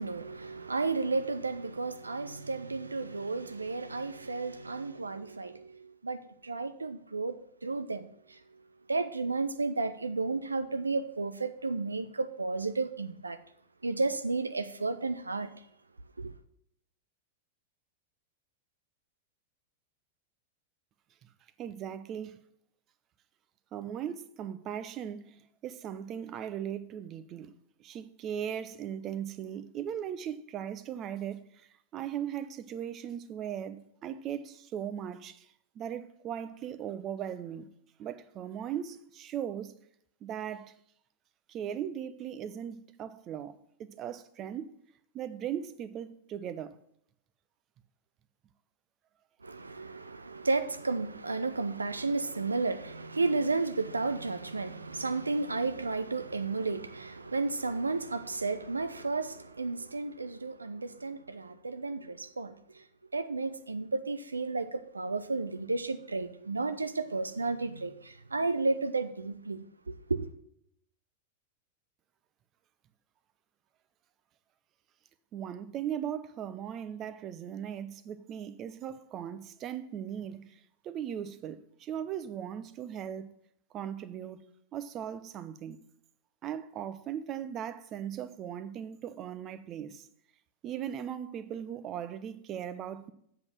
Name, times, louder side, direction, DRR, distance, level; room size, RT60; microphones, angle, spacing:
voice 1, 0.0-7.3 7.6-8.6 8.9-13.4 13.8-15.5 16.2-16.3 49.4-62.8 63.1-70.3, right 3 dB, 80° right, 0.6 m, -33 dB
voice 2, 21.6-22.4 23.7-27.5 27.8-37.7 38.0-39.7 40.2-40.7 41.5-44.8 45.1-46.8 75.3-83.3 83.7-84.4 84.7-85.8 86.4-90.1 90.6-93.1, right 9 dB, 30° right, 0.7 m, -38 dB
7.9 x 5.8 x 7.5 m
figure-of-eight pair, 90°, 0 cm